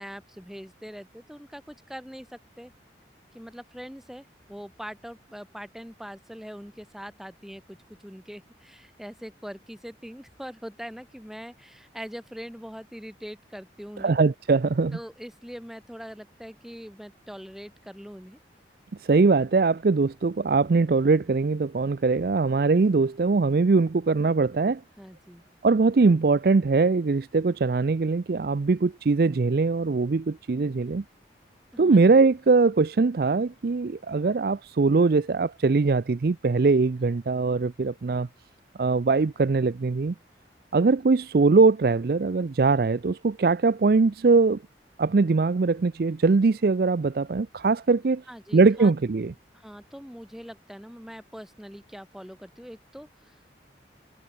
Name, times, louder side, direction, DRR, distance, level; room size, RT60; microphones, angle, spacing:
voice 1, 0.0-2.7 3.3-14.2 14.9-18.4 25.0-25.4 31.7-32.0 48.3-48.9 49.5-53.5, equal, ahead, 3.6 m, -42 dB
voice 2, 14.0-15.0 19.0-24.8 25.6-31.0 31.8-38.3 38.8-40.1 40.7-44.6 45.0-48.2 48.5-49.3, right 4 dB, 55° right, 0.5 m, -21 dB
head